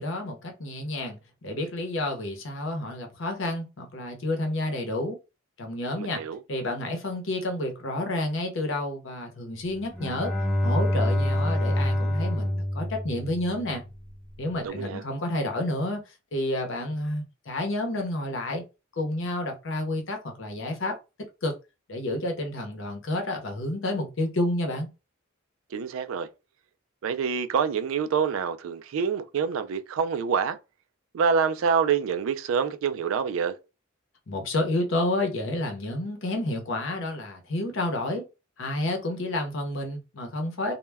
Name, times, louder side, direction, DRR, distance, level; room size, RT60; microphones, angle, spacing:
voice 1, 0.0-5.2 5.6-6.2 6.5-10.3 10.6-13.8 14.4-16.0 16.3-18.6 19.0-21.0 21.4-21.5 21.9-24.9 34.3-38.2 38.6-40.7, left 1 dB, 65° left, 0.7 m, -30 dB
voice 2, 6.0-6.4 14.6-15.0 25.7-26.3 27.0-30.6 31.1-33.6, right 6 dB, 75° right, 0.3 m, -26 dB
Bowed string instrument, 9.8-13.9, left 1 dB, 5° left, 0.6 m, -26 dB
2.2 x 2.1 x 3.3 m
head